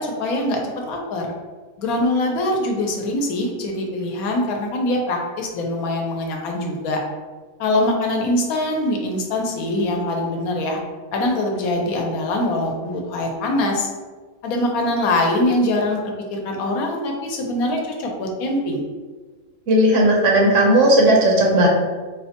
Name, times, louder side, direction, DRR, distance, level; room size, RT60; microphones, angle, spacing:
voice 1, 0.0-1.3 1.8-7.0 7.6-10.8 11.1-13.9 14.4-16.0 16.3-18.8, left 1 dB, 85° left, 1 dB, 1.1 m, -23 dB
voice 2, 19.7-21.7, right 1 dB, 65° right, -1 dB, 0.9 m, -15 dB
4.0 x 2.1 x 2.8 m, 1.4 s
omnidirectional pair, 1.5 m